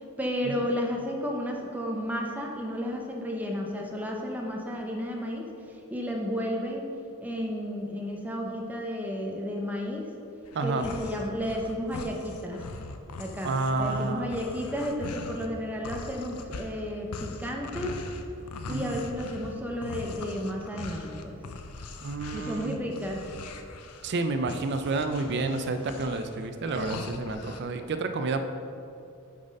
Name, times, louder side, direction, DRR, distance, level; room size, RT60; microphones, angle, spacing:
voice 1, 0.2-5.5 5.9-6.9 7.2-10.1 10.6-12.6 13.2-13.5 13.8-18.0 18.7-21.4 22.3-23.2, equal, 5° right, -1 dB, 0.7 m, -32 dB
sound 1, 10.4-15.5 15.8-27.6, left 3 dB, 90° left, 0.6 m, -41 dB
voice 2, 10.5-10.9 13.4-14.3 18.7-19.0 22.0-22.8 24.0-28.4, right 3 dB, 50° right, 8 dB, 0.4 m, -30 dB
8.4 x 4.0 x 5.3 m, 2.6 s
head